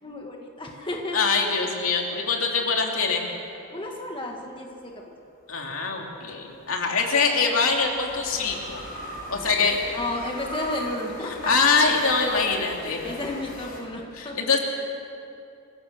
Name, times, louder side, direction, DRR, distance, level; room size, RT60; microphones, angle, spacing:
voice 1, 0.0-1.2 3.7-5.3 9.3-11.5 13.0-14.4, left 2 dB, 25° left, 0 dB, 1.7 m, -33 dB
voice 2, 1.1-3.3 5.5-8.8 9.3-9.8 11.5-13.1 14.2-14.6, left 4 dB, 65° left, 1 dB, 2.9 m, -23 dB
sound 1, 2.9-4.4 6.3-13.8, equal, 40° left, 4.7 m, -40 dB
26.5 x 16.5 x 6.6 m, 2.7 s
head